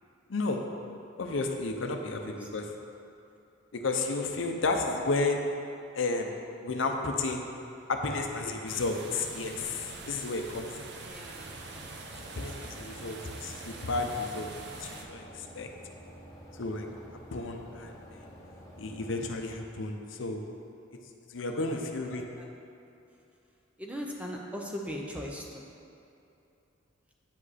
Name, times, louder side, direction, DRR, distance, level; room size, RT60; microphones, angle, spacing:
voice 1, 0.3-0.6 1.2-2.7 3.8-5.4 6.0-6.3 6.6-7.5 7.9-10.8 12.4-14.5 14.8-15.7 16.6-16.9 17.3-17.9 18.8-20.4 21.3-22.3, left 3 dB, 65° left, 3 dB, 0.6 m, -32 dB
sound 1, 8.7-15.0, right 3 dB, 55° right, 0.6 m, -44 dB
voice 2, 11.0-11.6 21.5-21.8 22.4-22.5 23.8-25.7, equal, 5° right, -1 dB, 0.6 m, -39 dB
sound 2, 11.4-19.4, equal, 15° left, 1.1 m, -50 dB
8.8 x 5.2 x 4.1 m, 2.8 s
head